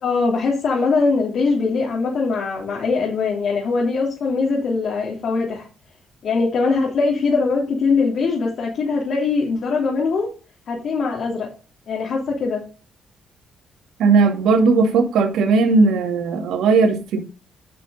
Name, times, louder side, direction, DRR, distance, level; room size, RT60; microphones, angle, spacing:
voice 1, 0.0-5.7 6.2-10.3 10.7-11.5 11.9-12.6, left 4 dB, 65° left, 3.2 m, -21 dB
voice 2, 14.0-17.2, right 4 dB, 80° right, 2.2 m, -17 dB
10.0 x 6.1 x 4.0 m
cardioid pair, 90°, 0 cm